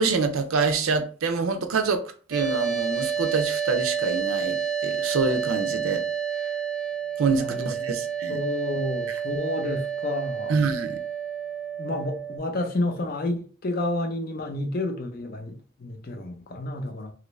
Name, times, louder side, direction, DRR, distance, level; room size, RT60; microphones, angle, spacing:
voice 1, 0.0-2.0 2.3-6.0 7.2-8.4 9.1-9.2 10.5-11.0, right 4 dB, 90° right, 0.5 m, -26 dB
sound 1, 2.3-12.4, right 7 dB, 5° right, 0.7 m, -29 dB
voice 2, 7.3-7.9 8.3-10.6 11.8-17.1, left 1 dB, 45° left, 0.5 m, -30 dB
3.0 x 2.5 x 3.1 m
head